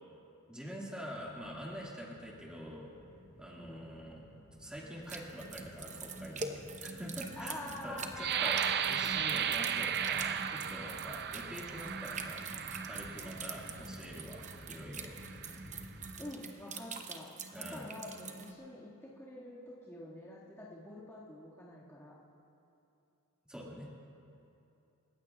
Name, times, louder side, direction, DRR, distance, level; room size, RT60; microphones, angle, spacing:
voice 1, 0.5-2.9 3.4-4.2 4.6-12.5 12.9-15.2 17.5-17.9 23.5-23.9, equal, 5° right, -4 dB, 1.9 m, -45 dB
sound 1, 1.1-16.1, equal, 40° left, 3.8 m, -54 dB
sound 2, 5.1-18.5, right 4 dB, 35° right, 0.9 m, -45 dB
voice 2, 7.3-9.1 9.7-9.8 13.2-13.4 16.2-22.1, left 1 dB, 15° left, -9 dB, 1.9 m, -47 dB
sound 3, 8.2-13.8 14.5-14.6 15.1-15.6, right 8 dB, 50° right, 0.5 m, -35 dB
29.5 x 15.5 x 2.4 m, 2.8 s
head